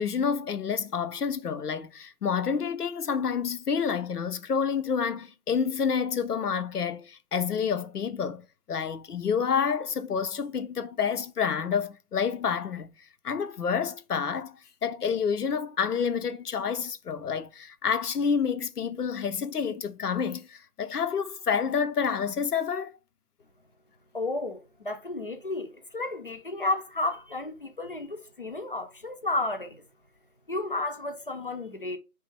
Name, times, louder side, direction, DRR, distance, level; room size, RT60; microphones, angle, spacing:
voice 1, 0.0-12.9 13.2-14.6 14.8-22.9, left 6 dB, 85° left, 0.8 m, -28 dB
voice 2, 24.1-29.8 30.5-32.0, left 2 dB, 35° left, 0.6 m, -32 dB
4.6 x 3.5 x 3.3 m
figure-of-eight pair, 160°, 46 cm